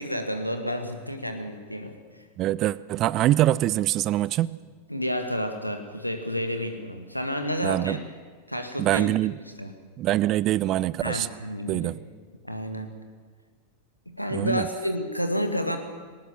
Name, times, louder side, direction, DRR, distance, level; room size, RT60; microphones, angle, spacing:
voice 1, 0.0-2.0 4.9-8.0 8.5-9.1 9.6-9.7 11.0-11.9 12.4-12.9 14.1-15.8, equal, 90° left, 7 dB, 2.0 m, -30 dB
voice 2, 2.4-4.6 7.6-8.0 8.8-9.4 10.0-11.3 11.7-12.0 14.3-14.7, right 14 dB, 35° right, 20 dB, 0.5 m, -24 dB
19.5 x 18.5 x 7.3 m, 1.5 s
figure-of-eight pair, 90°, 0 cm